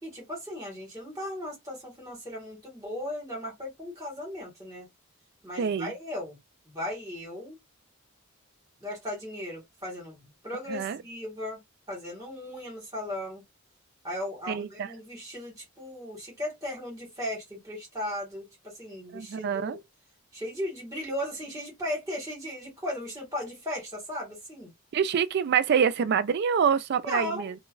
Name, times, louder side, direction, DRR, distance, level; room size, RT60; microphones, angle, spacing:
voice 1, 0.0-4.9 5.4-6.4 6.7-7.6 8.8-10.2 10.4-11.6 11.9-13.4 14.0-19.8 20.3-24.7 27.0-27.5, left 1 dB, 15° right, 1.7 m, -36 dB
voice 2, 5.6-5.9 10.7-11.0 14.5-14.9 19.1-19.8 24.9-27.5, right 7 dB, 50° right, 0.3 m, -26 dB
2.9 x 2.3 x 2.5 m
head